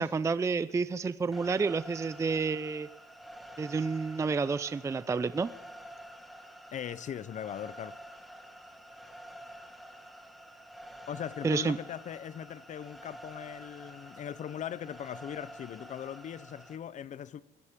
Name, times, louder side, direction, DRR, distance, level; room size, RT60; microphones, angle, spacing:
voice 1, 0.0-2.9 3.6-5.5 11.4-11.8, right 4 dB, 15° right, 0.4 m, -30 dB
sound 1, 1.3-16.8, equal, ahead, 1.8 m, -49 dB
voice 2, 6.7-8.0 11.1-17.4, left 9 dB, 45° left, 0.7 m, -40 dB
21.5 x 15.5 x 3.7 m
cardioid pair, 110°, 17 cm